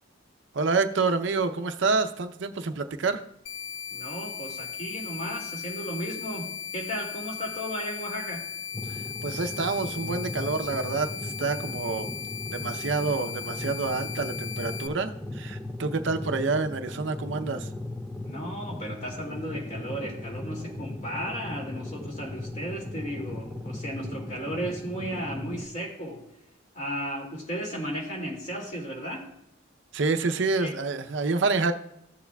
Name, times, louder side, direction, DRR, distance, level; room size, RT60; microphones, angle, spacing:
voice 1, 0.5-3.2 8.9-12.1 12.5-17.7 29.9-31.7, right 4 dB, 65° right, 8 dB, 0.6 m, -28 dB
sound 1, 3.5-14.9, left 7 dB, 85° left, 0.5 m, -37 dB
voice 2, 3.9-8.4 18.2-26.2 26.7-29.3 30.6-30.7, equal, 35° left, 0 dB, 2.3 m, -35 dB
sound 2, 8.7-25.7, left 1 dB, 5° left, 0.3 m, -38 dB
14.5 x 7.1 x 2.2 m, 0.78 s
head